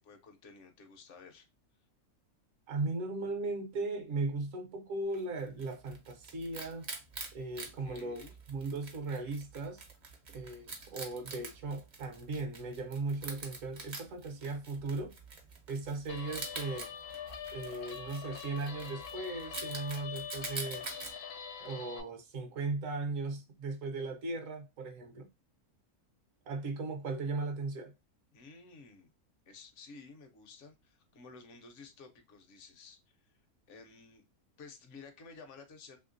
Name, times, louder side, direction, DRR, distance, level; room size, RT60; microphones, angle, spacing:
voice 1, 0.0-1.5 7.8-8.4 28.3-29.1 29.5-33.4 33.7-34.2 34.6-36.0, left 4 dB, 60° left, 0.9 m, -53 dB
voice 2, 2.7-6.9 7.3-8.2 8.5-9.8 10.3-15.1 15.7-16.9 17.5-20.8 21.6-25.3 26.4-27.9, right 3 dB, 65° right, 0.9 m, -37 dB
Wild animals, 5.1-21.1, right 4 dB, 45° right, 0.6 m, -46 dB
Guitar, 16.1-22.0, left 8 dB, 85° left, 1.1 m, -44 dB
3.1 x 2.8 x 2.5 m
omnidirectional pair, 1.6 m